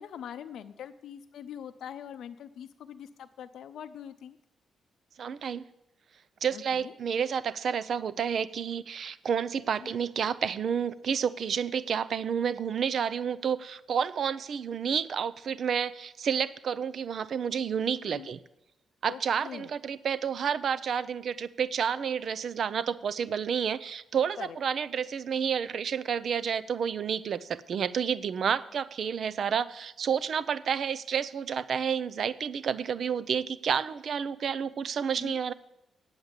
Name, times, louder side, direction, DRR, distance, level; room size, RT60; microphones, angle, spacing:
voice 1, 0.0-4.4 6.5-6.9 9.8-10.0 18.1-18.3 19.1-19.7 24.4-24.6 35.2-35.4, left 9 dB, 75° left, 9 dB, 0.5 m, -43 dB
voice 2, 5.2-5.6 6.4-18.4 19.0-35.5, right 7 dB, 50° right, 16 dB, 0.5 m, -30 dB
9.6 x 7.9 x 7.3 m, 0.90 s
wide cardioid pair, 160°, 0 cm